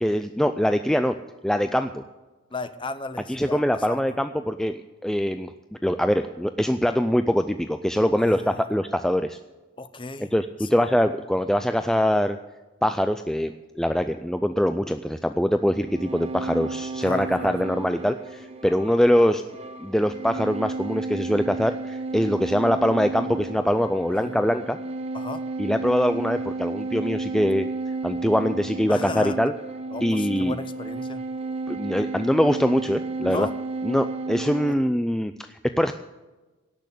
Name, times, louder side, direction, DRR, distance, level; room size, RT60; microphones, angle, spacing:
voice 1, 0.0-1.2 1.4-2.0 3.3-4.8 5.0-5.5 5.8-9.4 10.2-12.4 12.8-19.4 19.8-24.8 25.6-27.7 28.0-29.5 30.0-30.5 31.7-33.5 33.8-35.9, equal, 5° left, 8 dB, 0.3 m, -23 dB
voice 2, 2.5-4.0 8.2-8.7 9.8-10.3 10.6-10.8 17.0-17.6 24.1-24.5 25.1-25.4 28.9-29.4 29.9-31.3 33.3-33.6 34.7-34.8, left 3 dB, 25° left, 12 dB, 0.7 m, -35 dB
sound 1, 15.7-34.7, right 3 dB, 30° right, 0.8 m, -33 dB
17.0 x 6.3 x 8.3 m, 1.2 s
head